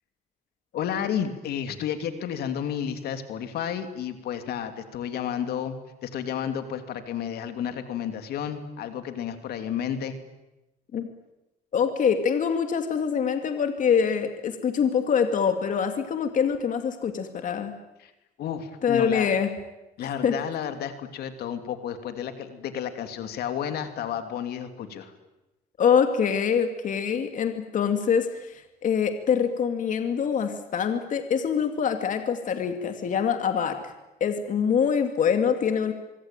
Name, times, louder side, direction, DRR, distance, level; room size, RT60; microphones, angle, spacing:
voice 1, 0.7-5.8 6.0-10.2 18.0-18.1 18.4-19.3 20.0-25.1, left 8 dB, 70° left, 8 dB, 2.9 m, -31 dB
voice 2, 11.7-17.8 18.8-19.5 20.0-20.3 25.8-33.9 34.2-35.9, left 7 dB, 50° left, 7 dB, 2.6 m, -24 dB
24.5 x 24.5 x 9.1 m, 1.0 s
cardioid pair, 110°, 17 cm